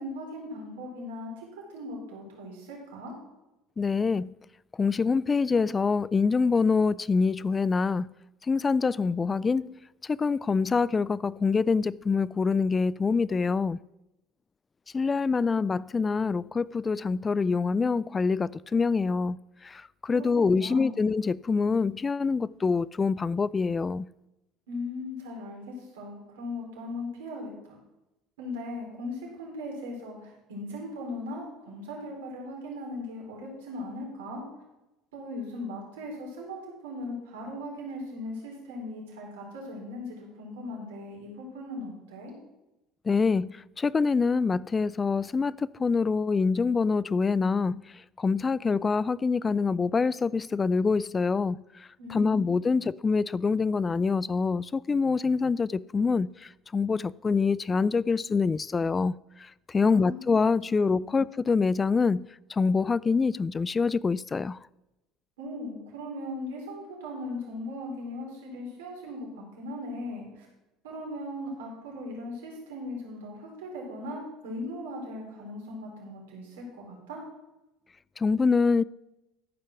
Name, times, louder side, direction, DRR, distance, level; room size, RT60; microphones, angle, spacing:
voice 1, 0.0-3.1 20.1-20.3 20.6-20.9 24.7-27.8 28.4-34.4 35.1-36.6 36.8-42.3 52.0-52.5 59.8-60.2 61.0-61.2 65.4-70.5 70.8-77.2, left 1 dB, 85° right, 4.1 m, -38 dB
voice 2, 3.8-4.3 4.8-8.1 8.5-9.7 10.0-13.8 14.9-19.4 19.6-24.1 43.1-64.6 78.2-78.8, left 4 dB, 25° left, 0.3 m, -25 dB
13.5 x 5.7 x 6.0 m
hypercardioid pair, 80°, 0 cm